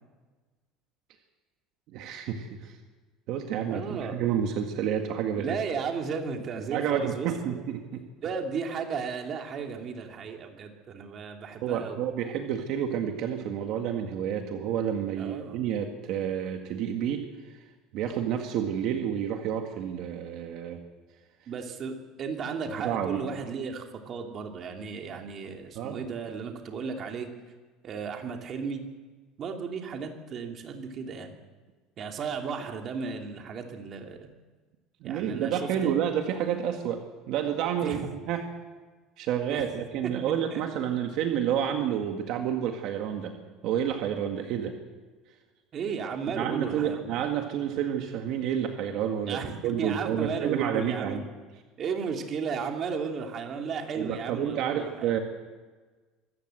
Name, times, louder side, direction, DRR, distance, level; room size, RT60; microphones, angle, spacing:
voice 1, 1.9-2.8 3.3-5.6 6.7-8.0 11.6-17.2 17.5-17.6 17.9-20.8 22.8-23.2 25.8-26.0 35.0-38.0 38.3-38.4 39.2-43.3 43.6-44.8 46.3-51.3 54.0-55.2, right 9 dB, 60° right, 4 dB, 1.9 m, -29 dB
voice 2, 3.7-4.1 5.3-7.6 8.2-12.0 15.2-15.6 21.5-27.3 27.8-28.8 29.4-31.3 32.0-34.3 35.0-35.9 37.8-38.1 39.5-39.6 40.0-40.1 40.5-40.6 45.7-47.0 49.2-51.2 51.8-55.1, right 5 dB, 35° right, 3 dB, 2.6 m, -34 dB
25.0 x 14.5 x 7.8 m, 1.3 s
cardioid pair, 145°, 0 cm